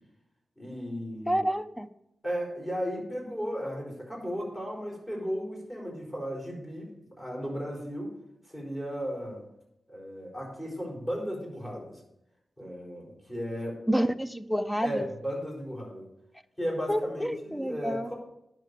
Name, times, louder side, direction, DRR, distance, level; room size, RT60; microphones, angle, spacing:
voice 1, 0.6-1.4 2.2-8.1 8.5-9.4 9.9-12.0 12.6-13.8 14.8-16.1 16.6-18.1, equal, 20° left, 4.9 m, -35 dB
voice 2, 1.3-1.9 13.9-15.1 16.9-18.1, equal, 5° left, 0.5 m, -28 dB
10.5 x 6.5 x 6.6 m
wide cardioid pair, 90°, 0 cm